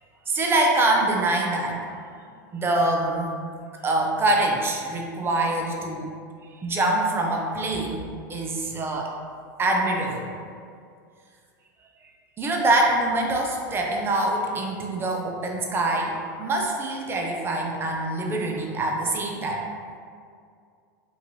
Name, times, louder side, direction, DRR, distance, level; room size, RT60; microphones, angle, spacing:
voice 1, 0.3-1.8 2.5-3.3 3.8-6.1 6.6-9.1 9.6-10.3 12.4-19.6, right 2 dB, 20° right, 0 dB, 0.6 m, -24 dB
5.2 x 2.5 x 3.1 m, 2.2 s
hypercardioid pair, 110°, 11 cm